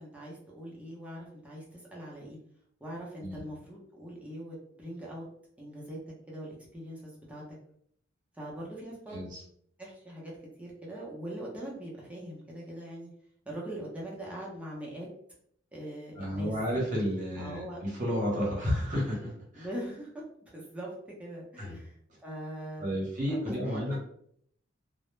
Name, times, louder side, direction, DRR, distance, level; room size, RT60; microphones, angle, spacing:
voice 1, 0.0-2.4 2.8-5.2 5.6-6.0 6.3-7.4 8.3-9.2 9.8-10.3 10.6-13.1 13.4-15.1 15.7-16.6 17.3-17.8 19.5-20.2 20.5-20.9 21.2-21.9 22.2-23.0 23.3-24.0, right 1 dB, 5° right, -5 dB, 0.6 m, -41 dB
voice 2, 9.1-9.4 16.2-19.7 21.6-21.8 22.8-24.0, equal, 40° right, -4 dB, 0.8 m, -31 dB
2.1 x 2.0 x 3.0 m, 0.67 s
head